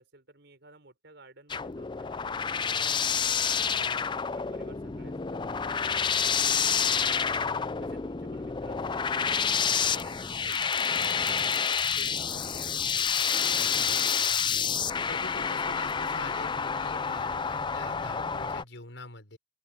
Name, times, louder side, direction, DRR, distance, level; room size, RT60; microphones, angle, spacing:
voice 1, 0.0-3.1 3.4-7.4 7.8-9.1 9.5-13.0 13.3-14.6 15.3-15.9, right 2 dB, 65° right, 5.4 m, -53 dB
sound 1, 1.5-18.6, left 6 dB, 25° left, 0.5 m, -28 dB
voice 2, 14.0-14.4 15.1-19.4, left 3 dB, 80° left, 5.2 m, -44 dB
open air
head